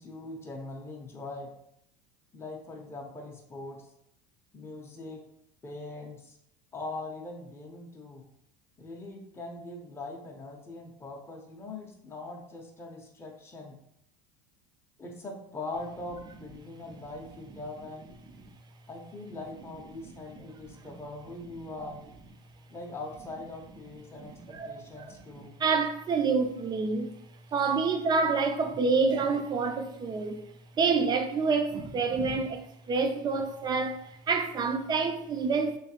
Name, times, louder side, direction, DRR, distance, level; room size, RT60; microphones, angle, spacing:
voice 1, 0.0-1.5 2.3-3.8 4.5-5.2 5.6-6.4 6.7-8.3 8.8-13.8 15.0-18.2 18.9-22.0 22.7-25.5, left 2 dB, 15° left, 0.6 m, -41 dB
voice 2, 20.4-20.8 24.1-27.3 27.5-30.5 30.8-35.8, right 4 dB, 25° right, 0.4 m, -28 dB
3.1 x 3.1 x 2.9 m
supercardioid pair, 115°, 17 cm